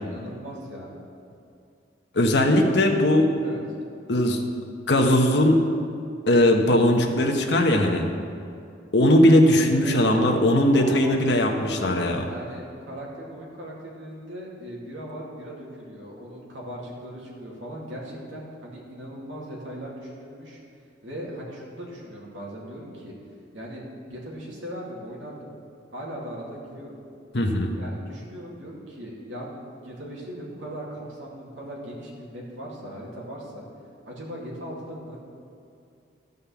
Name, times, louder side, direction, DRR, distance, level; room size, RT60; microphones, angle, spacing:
voice 1, 0.0-0.9 2.5-2.8 3.4-3.6 9.8-10.4 10.7-11.2 12.3-20.6 21.0-23.1 23.5-25.5 25.9-27.0 27.8-29.5 29.8-33.7 34.1-35.2, equal, 85° right, -4 dB, 2.5 m, -38 dB
voice 2, 2.1-3.3 4.1-4.4 4.9-5.6 6.3-8.0 8.9-12.3 27.3-27.7, left 1 dB, 65° left, 2 dB, 1.1 m, -19 dB
13.5 x 5.4 x 7.0 m, 2.5 s
head